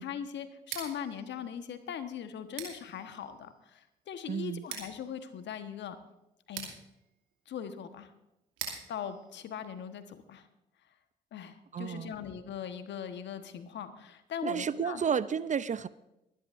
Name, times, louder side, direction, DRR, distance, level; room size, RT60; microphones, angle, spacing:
voice 1, 0.0-6.0 6.5-6.7 7.5-8.1 8.9-10.5 11.3-15.0, left 8 dB, 60° left, 1.3 m, -40 dB
Scissors, 0.6-10.4, right 7 dB, 75° right, 2.6 m, -47 dB
voice 2, 4.3-4.6 11.7-12.1 14.4-15.9, right 7 dB, 40° right, 0.5 m, -31 dB
23.0 x 11.5 x 2.6 m
hypercardioid pair, 45°, 20 cm